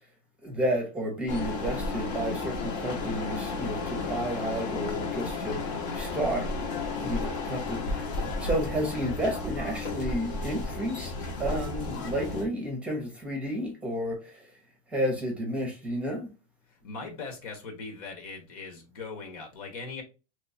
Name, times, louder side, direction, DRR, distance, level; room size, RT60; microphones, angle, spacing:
voice 1, 0.4-6.5 7.0-8.1 8.4-11.1 11.4-14.4 14.9-16.3, equal, 5° right, 0.7 m, -31 dB
sound 1, 1.3-12.5, left 3 dB, 55° left, 1.0 m, -33 dB
voice 2, 16.8-20.0, left 4 dB, 75° left, 1.5 m, -40 dB
3.1 x 2.9 x 2.8 m
supercardioid pair, 170°, 19 cm